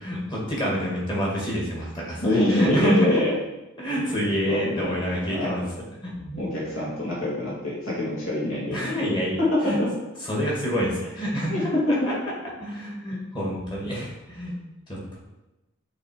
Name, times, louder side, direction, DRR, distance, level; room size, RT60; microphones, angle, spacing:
voice 1, 0.0-3.2 3.8-5.6 6.0-6.4 8.7-9.4 9.6-9.8 10.2-11.7 12.1-12.2 12.6-14.6 14.9-15.2, equal, 20° left, -5 dB, 2.0 m, -27 dB
voice 2, 2.2-3.3 4.4-5.0 5.3-5.7 6.4-8.8 9.4-9.9 11.5-12.0, left 1 dB, 60° left, -6 dB, 2.4 m, -25 dB
8.3 x 3.3 x 4.5 m, 1.0 s
head